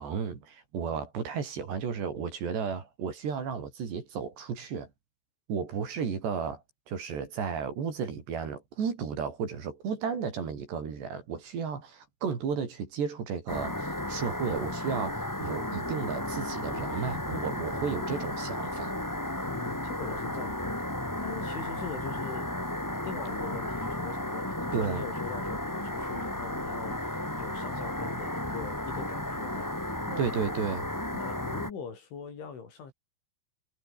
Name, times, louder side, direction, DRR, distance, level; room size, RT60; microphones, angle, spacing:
voice 1, 0.0-4.9 5.5-18.9 24.7-25.0 30.2-30.9, right 6 dB, 60° right, 6.4 m, -33 dB
sound 1, 13.5-31.7, left 1 dB, 25° left, 0.4 m, -34 dB
voice 2, 19.5-22.6 23.0-29.7 30.1-30.3 31.1-32.9, left 6 dB, 70° left, 8.0 m, -42 dB
omnidirectional pair, 5.7 m